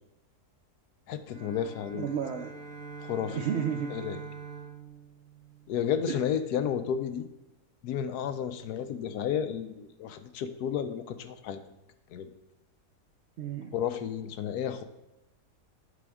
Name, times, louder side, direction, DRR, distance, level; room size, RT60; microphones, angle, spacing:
voice 1, 1.1-2.1 3.0-3.5 3.9-4.2 5.7-7.2 7.8-11.6 12.1-12.3 13.7-14.8, left 8 dB, 80° left, 10 dB, 1.1 m, -32 dB
sound 1, 1.2-6.0, right 5 dB, 45° right, 1.0 m, -44 dB
voice 2, 1.9-2.5 3.3-3.9 6.1-6.2 13.4-13.8, right 7 dB, 80° right, 5 dB, 0.5 m, -32 dB
9.6 x 5.9 x 3.5 m, 0.97 s
omnidirectional pair, 1.7 m